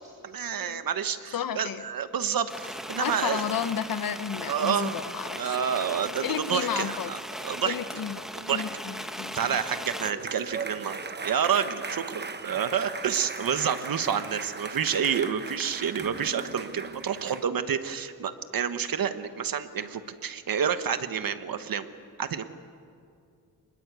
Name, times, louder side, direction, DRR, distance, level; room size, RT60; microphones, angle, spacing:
voice 1, 0.2-3.4 4.5-4.9 5.4-7.7 8.3-8.6 9.3-11.0 11.2-21.8 22.2-22.4, right 7 dB, 70° right, 10 dB, 1.3 m, -29 dB
voice 2, 1.3-1.9 3.0-5.6 6.2-7.1 7.6-9.6, left 8 dB, 70° left, 13 dB, 1.0 m, -32 dB
sound 1, 2.5-10.1, equal, ahead, 1.3 m, -38 dB
sound 2, 9.6-17.5, right 4 dB, 30° right, 1.0 m, -38 dB
27.0 x 20.5 x 8.3 m, 2.4 s
wide cardioid pair, 115°, 35 cm